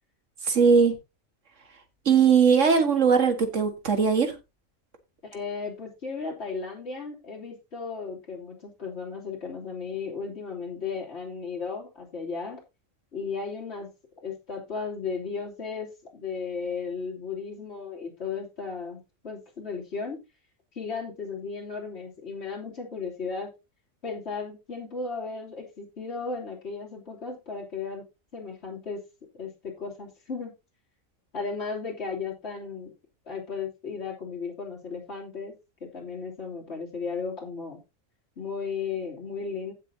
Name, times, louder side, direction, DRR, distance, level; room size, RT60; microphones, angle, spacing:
voice 1, 0.5-0.9 2.1-4.3, right 6 dB, 60° right, 2.0 m, -20 dB
voice 2, 5.3-12.6 13.1-13.9 14.2-20.2 20.7-23.5 24.0-28.0 28.3-29.0 29.3-30.5 31.3-32.9 33.2-35.5 35.8-37.8 38.4-39.7, left 5 dB, 50° left, 3.1 m, -35 dB
16.0 x 6.0 x 2.8 m
omnidirectional pair, 1.4 m